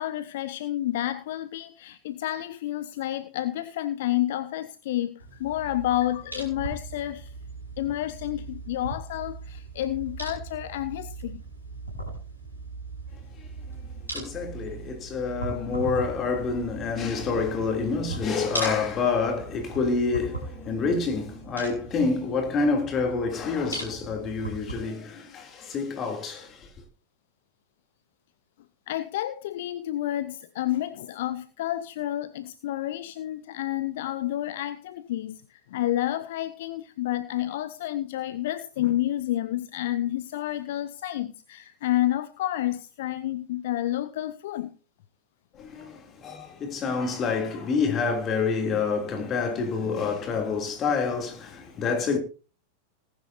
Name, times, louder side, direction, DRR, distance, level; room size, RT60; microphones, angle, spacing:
voice 1, 0.0-7.3 7.8-11.4 28.9-44.7, left 13 dB, 55° left, 0.6 m, -30 dB
sound 1, 5.2-24.8, right 3 dB, 85° left, 5.3 m, -39 dB
voice 2, 14.1-26.7 45.5-52.2, left 4 dB, 30° left, 3.1 m, -27 dB
19.0 x 10.5 x 2.8 m
figure-of-eight pair, 90°, 0 cm